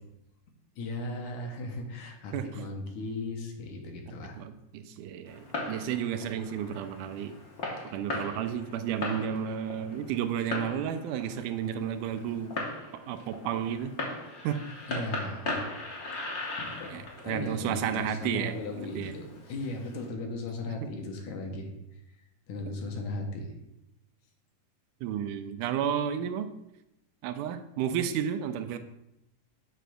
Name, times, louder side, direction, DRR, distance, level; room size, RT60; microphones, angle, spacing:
voice 1, 0.8-4.4 14.9-15.7 16.6-21.7 22.5-23.5, left 2 dB, 75° left, 3 dB, 2.4 m, -37 dB
voice 2, 2.3-2.6 4.4-7.4 7.9-12.6 12.9-13.9 14.4-14.6 15.0-15.1 16.9-18.5 19.0-19.1 20.8-20.9 25.0-26.5 27.2-28.8, right 9 dB, 90° right, 9 dB, 2.1 m, -32 dB
Fireworks, 5.3-20.1, left 2 dB, 55° left, 1.0 m, -39 dB
8.1 x 3.4 x 6.2 m, 0.87 s
omnidirectional pair, 3.6 m